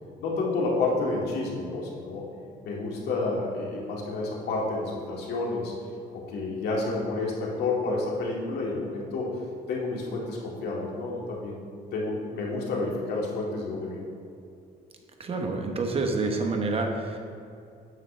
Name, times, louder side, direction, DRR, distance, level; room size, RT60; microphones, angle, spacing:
voice 1, 0.2-2.2 2.6-5.7 6.1-9.3 9.7-11.6 11.9-14.1, left 3 dB, 75° left, -3 dB, 2.2 m, -30 dB
voice 2, 15.2-17.2, right 3 dB, 35° right, 3 dB, 1.0 m, -28 dB
9.3 x 7.6 x 3.3 m, 2.4 s
cardioid pair, 110°, 17 cm